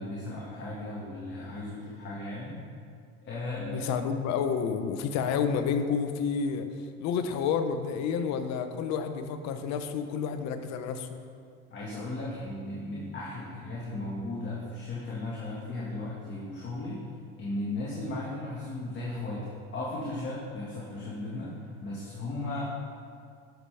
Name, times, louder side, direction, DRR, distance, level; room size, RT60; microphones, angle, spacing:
voice 1, 0.0-2.6 3.3-4.0 11.7-17.0 17.4-19.5 19.7-22.6, left 2 dB, 35° left, -6 dB, 1.9 m, -36 dB
voice 2, 3.7-6.7 7.0-11.1, left 6 dB, 60° left, 8 dB, 0.8 m, -30 dB
12.0 x 6.9 x 3.4 m, 2.2 s
supercardioid pair, 100°, 31 cm